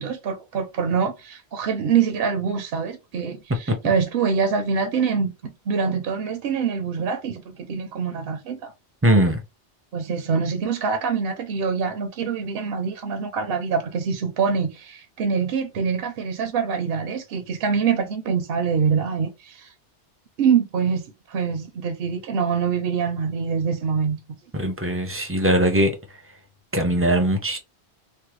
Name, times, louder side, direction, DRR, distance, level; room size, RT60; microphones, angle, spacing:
voice 1, 0.0-8.7 9.9-19.7 20.4-24.2, right 6 dB, 65° right, 0.7 m, -25 dB
voice 2, 9.0-9.4 24.6-25.9 26.7-27.6, right 1 dB, 15° right, 0.4 m, -20 dB
3.2 x 2.1 x 3.0 m
omnidirectional pair, 1.1 m